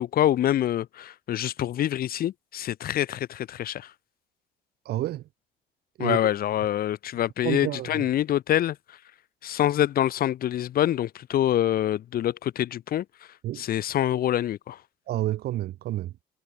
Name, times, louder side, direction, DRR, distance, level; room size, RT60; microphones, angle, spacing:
voice 1, 0.0-3.9 6.0-8.8 9.4-13.0 13.6-14.8, left 12 dB, 60° left, 3.0 m, -25 dB
voice 2, 4.8-5.2 6.0-6.2 7.4-8.0 13.4-13.6 15.1-16.1, right 14 dB, 70° right, 2.7 m, -29 dB
cardioid pair, 110°, 17 cm